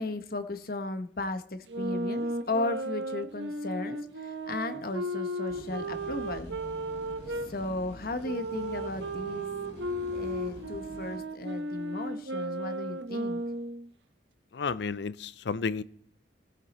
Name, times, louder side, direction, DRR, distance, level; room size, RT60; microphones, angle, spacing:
voice 1, 0.0-6.6 7.5-9.5 10.1-13.4, left 2 dB, 55° left, 9 dB, 1.1 m, -35 dB
sound 1, 1.7-7.5 8.2-13.9, right 1 dB, 80° right, 1.3 m, -35 dB
sound 2, 5.5-11.2, left 1 dB, 35° left, 2.7 m, -47 dB
voice 2, 14.5-15.8, left 5 dB, 70° left, 18 dB, 0.5 m, -32 dB
17.0 x 8.2 x 4.2 m, 0.65 s
head